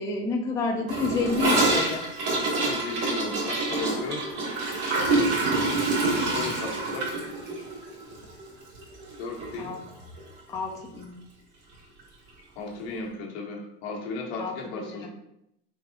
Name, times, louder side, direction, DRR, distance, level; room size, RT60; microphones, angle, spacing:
voice 1, 0.0-2.0 5.9-6.5 9.6-9.8 10.5-11.2 14.4-15.1, left 4 dB, 10° left, 1 dB, 0.3 m, -30 dB
Gurgling / Toilet flush, 0.9-9.1 9.4-9.5 9.8-10.3 10.5-10.6 10.9-11.0 12.0-12.1, right 2 dB, 55° right, 1.5 m, -27 dB
voice 2, 2.6-4.2 6.1-7.1 9.2-9.7 12.6-15.1, left 3 dB, 85° left, -1 dB, 1.0 m, -35 dB
3.4 x 3.3 x 2.7 m, 0.78 s
supercardioid pair, 125°, 32 cm